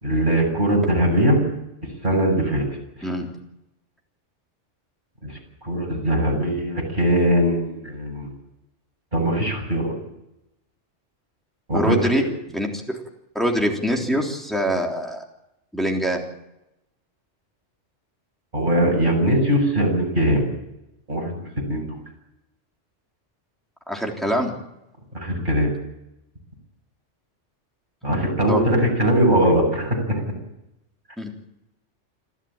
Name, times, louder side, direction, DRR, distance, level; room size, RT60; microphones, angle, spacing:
voice 1, 0.0-1.4 2.0-2.7 5.2-5.3 5.6-8.3 9.1-9.9 11.7-12.1 18.5-20.5 21.1-22.0 25.1-25.7 28.0-30.2, equal, 40° right, 0 dB, 7.5 m, -21 dB
voice 2, 11.7-12.2 12.5-13.0 13.4-15.2 15.7-16.2 23.9-24.5 25.3-25.4 28.5-28.6 31.2-31.3, equal, ahead, 0 dB, 3.6 m, -24 dB
26.5 x 13.5 x 8.9 m, 0.90 s
omnidirectional pair, 1.2 m